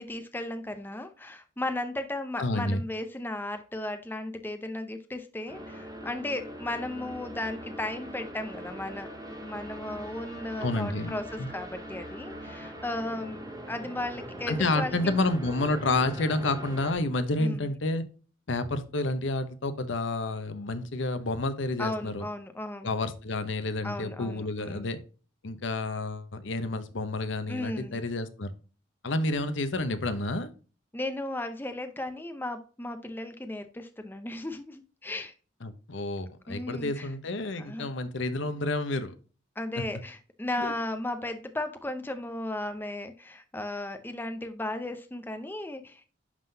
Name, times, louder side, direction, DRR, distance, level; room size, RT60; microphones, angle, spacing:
voice 1, 0.0-9.1 9.4-15.2 17.4-17.7 21.8-22.9 23.8-24.9 27.5-28.0 30.9-35.3 36.5-37.1 37.6-37.9 39.6-46.1, left 1 dB, 10° left, 0.5 m, -35 dB
voice 2, 2.4-2.8 10.6-11.5 14.5-18.1 18.5-22.3 22.8-25.0 25.4-28.5 29.0-30.5 35.6-39.1 39.8-39.9 40.6-40.7, left 2 dB, 65° left, 0.8 m, -30 dB
sound 1, 5.5-16.9, equal, 20° right, 1.3 m, -41 dB
11.0 x 3.8 x 2.7 m
head